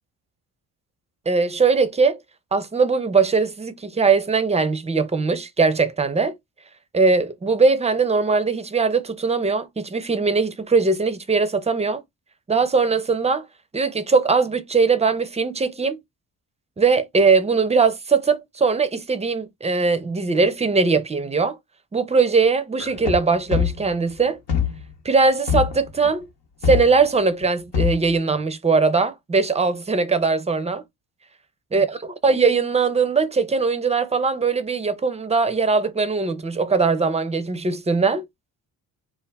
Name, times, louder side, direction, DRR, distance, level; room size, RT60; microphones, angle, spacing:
voice 1, 1.3-2.2 2.5-6.4 6.9-12.0 12.5-13.5 13.7-16.0 16.8-21.6 21.9-24.4 25.0-26.3 26.7-30.8 31.7-32.0 32.2-38.2, right 4 dB, 15° right, 0.5 m, -20 dB
sound 1, 22.8-24.1 24.5-24.9 25.5-26.1 26.6-27.1 27.4-27.5 27.7-28.1, left 8 dB, 65° left, 0.8 m, -24 dB
2.2 x 2.2 x 3.3 m
supercardioid pair, 50°, 44 cm